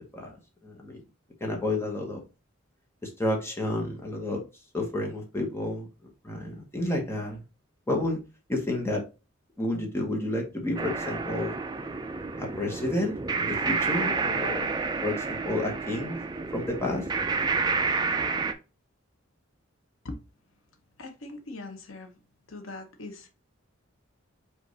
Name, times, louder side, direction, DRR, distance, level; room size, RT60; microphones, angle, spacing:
voice 1, 0.6-1.0 1.4-2.2 3.0-4.4 4.7-5.9 6.2-7.4 7.9-8.2 8.5-9.0 9.6-11.6 12.4-14.7 15.0-16.2 16.5-17.0, left 1 dB, 10° left, 1.1 m, -30 dB
sound 1, 10.8-18.5, right 4 dB, 20° right, 0.4 m, -29 dB
voice 2, 21.0-22.1 22.5-23.3, left 2 dB, 80° left, 0.9 m, -41 dB
5.1 x 2.6 x 4.0 m
head